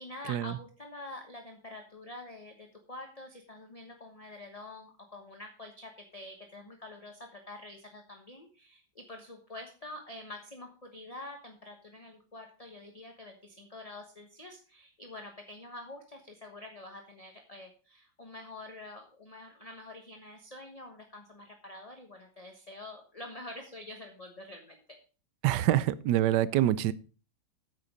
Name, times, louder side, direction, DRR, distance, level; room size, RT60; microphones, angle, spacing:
voice 1, 0.0-24.8, left 2 dB, 20° left, 3 dB, 1.2 m, -47 dB
voice 2, 25.4-26.9, right 13 dB, 70° right, 17 dB, 1.2 m, -25 dB
9.3 x 8.3 x 5.0 m, 0.37 s
omnidirectional pair, 2.1 m